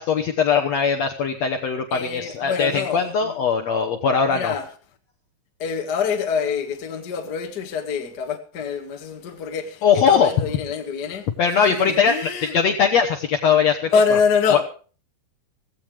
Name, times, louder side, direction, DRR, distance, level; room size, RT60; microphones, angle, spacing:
voice 1, 0.0-4.5 9.8-10.6 11.4-14.2 14.5-14.6, left 6 dB, 75° left, 1.6 m, -20 dB
voice 2, 1.9-3.4 4.3-4.6 5.6-11.3 11.7-12.5 13.9-14.6, left 6 dB, 40° left, 1.5 m, -25 dB
16.5 x 16.5 x 3.4 m
omnidirectional pair, 4.6 m